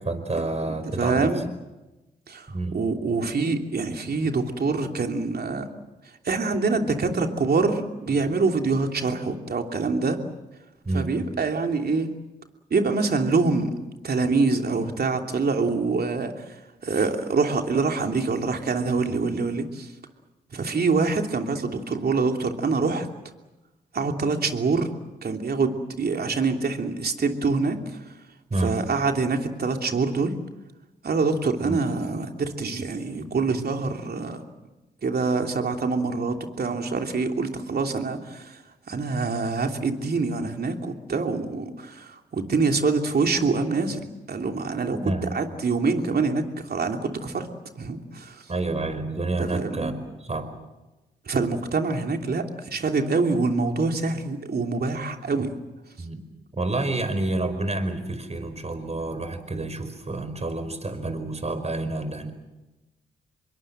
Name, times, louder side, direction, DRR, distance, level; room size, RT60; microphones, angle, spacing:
voice 1, 0.0-1.3 2.5-2.8 10.9-11.2 28.5-28.8 31.6-31.8 45.0-45.3 48.5-50.5 56.0-56.2 56.5-62.3, right 2 dB, 30° right, 9 dB, 5.2 m, -29 dB
voice 2, 1.0-1.5 2.3-5.7 6.2-10.2 10.9-12.1 12.7-13.7 14.0-16.3 16.8-19.9 20.5-23.1 23.9-24.9 25.2-27.8 28.6-30.3 31.0-34.4 35.0-38.5 38.9-44.0 44.3-47.5 47.7-48.4 49.4-49.9 51.3-52.4 52.7-55.5, right 4 dB, 50° right, 4 dB, 3.1 m, -25 dB
26.0 x 22.5 x 7.7 m, 1.1 s
hypercardioid pair, 45°, 21 cm